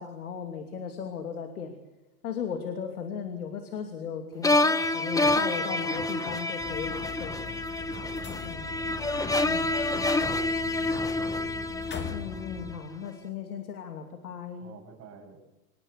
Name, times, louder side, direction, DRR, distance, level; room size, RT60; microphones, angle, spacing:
voice 1, 0.0-1.7 2.2-7.4 8.4-8.7 9.4-9.7 12.1-14.7, left 7 dB, 90° left, 5 dB, 2.9 m, -37 dB
sound 1, 4.4-12.6, left 2 dB, 10° left, 1.3 m, -28 dB
sound 2, 6.6-12.8, left 5 dB, 25° left, 2.1 m, -41 dB
voice 2, 7.8-8.6 9.1-11.7 14.6-15.4, right 5 dB, 35° right, 4 dB, 7.2 m, -48 dB
27.0 x 19.5 x 6.6 m, 1.0 s
hypercardioid pair, 120°, 43 cm